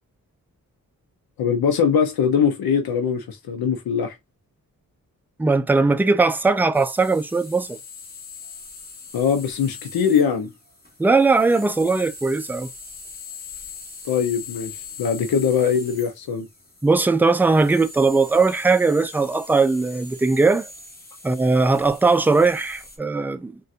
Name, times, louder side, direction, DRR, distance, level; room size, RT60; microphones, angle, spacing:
voice 1, 1.4-4.2 9.1-10.5 14.1-14.7 15.0-16.5, left 7 dB, 85° left, 0.7 m, -21 dB
voice 2, 5.4-7.8 11.0-12.7 16.8-20.7 21.2-23.6, right 3 dB, 5° right, 0.3 m, -19 dB
sound 1, 6.7-23.0, left 4 dB, 25° left, 1.2 m, -41 dB
3.9 x 2.3 x 2.4 m
cardioid pair, 65°, 35 cm